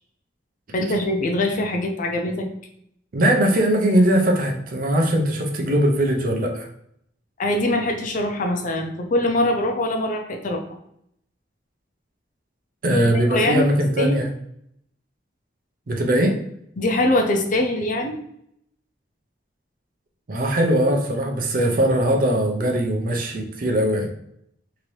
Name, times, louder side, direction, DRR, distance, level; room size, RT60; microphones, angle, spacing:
voice 1, 0.7-2.5 7.4-10.6 12.9-13.0 13.3-13.7 14.0-14.2 16.8-18.2, left 1 dB, 45° left, 3 dB, 0.5 m, -22 dB
voice 2, 3.1-6.7 12.8-14.3 15.9-16.3 20.3-24.1, right 1 dB, 50° right, 2 dB, 0.6 m, -20 dB
2.9 x 2.6 x 3.1 m, 0.73 s
head